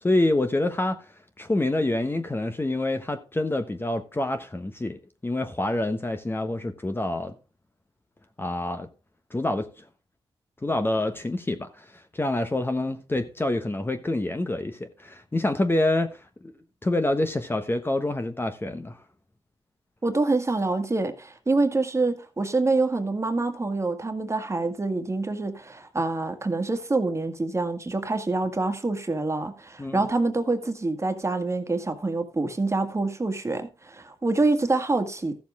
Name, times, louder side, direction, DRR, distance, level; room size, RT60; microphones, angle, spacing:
voice 1, 0.0-7.3 8.4-8.9 9.3-9.9 10.6-16.5 16.8-19.0 29.8-30.0, left 2 dB, 20° left, 1.2 m, -27 dB
voice 2, 20.0-35.4, right 3 dB, 25° right, 1.8 m, -26 dB
14.0 x 7.1 x 3.6 m
cardioid pair, 70°, 11 cm